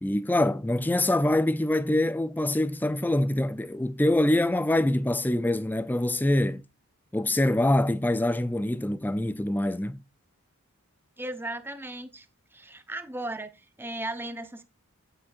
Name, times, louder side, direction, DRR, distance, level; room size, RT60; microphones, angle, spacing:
voice 1, 0.0-6.6 7.1-10.0, left 1 dB, 10° left, 0.4 m, -25 dB
voice 2, 11.2-12.3 12.5-14.6, right 2 dB, 10° right, 0.8 m, -36 dB
14.5 x 6.1 x 2.5 m
head